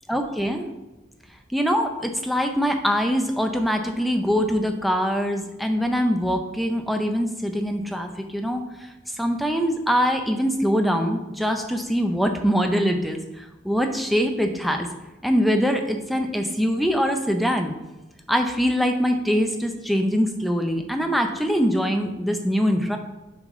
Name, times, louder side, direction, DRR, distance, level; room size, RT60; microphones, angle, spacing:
voice 1, 0.1-0.7 1.5-8.6 9.2-14.9 15.2-17.7 18.3-23.0, equal, ahead, 4 dB, 0.5 m, -23 dB
6.2 x 5.4 x 3.7 m, 1.1 s
head